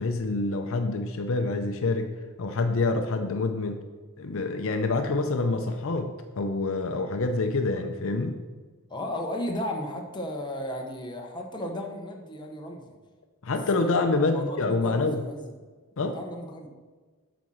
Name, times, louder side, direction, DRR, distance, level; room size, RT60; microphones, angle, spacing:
voice 1, 0.0-3.8 4.2-8.4 13.4-15.2 16.0-16.2, left 3 dB, 65° left, 6 dB, 0.6 m, -27 dB
voice 2, 8.9-12.9 13.4-14.0 14.3-15.5 16.0-16.7, left 1 dB, 20° left, 1 dB, 1.1 m, -35 dB
8.0 x 4.3 x 6.4 m, 1.3 s
head